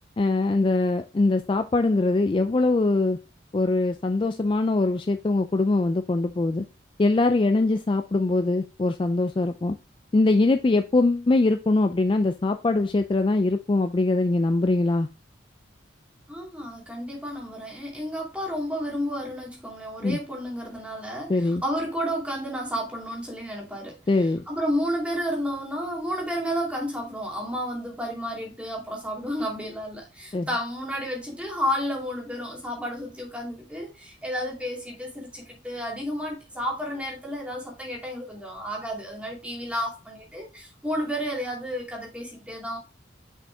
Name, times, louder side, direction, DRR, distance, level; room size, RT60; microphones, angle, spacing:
voice 1, 0.2-3.2 3.5-6.6 7.0-9.8 10.1-15.1 20.0-20.2 21.3-21.6 24.1-24.4 30.3-30.5, left 2 dB, 25° left, 0.3 m, -22 dB
voice 2, 16.3-42.8, equal, 5° right, 2.3 m, -31 dB
6.3 x 5.1 x 3.3 m
head